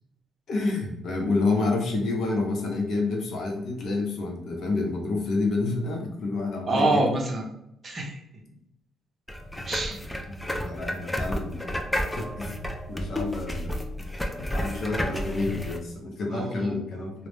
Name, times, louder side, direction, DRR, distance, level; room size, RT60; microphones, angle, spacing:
voice 1, 0.5-7.0 10.3-11.8 12.2-13.8 14.4-17.3, left 3 dB, 65° left, 1 dB, 0.6 m, -29 dB
voice 2, 6.7-7.4 7.8-8.5 9.7-10.0 16.3-16.8, right 2 dB, 40° right, 1 dB, 0.6 m, -26 dB
sound 1, 9.3-15.8, left 1 dB, 10° left, 0.3 m, -31 dB
2.1 x 2.0 x 3.1 m, 0.78 s
cardioid pair, 90°, 0 cm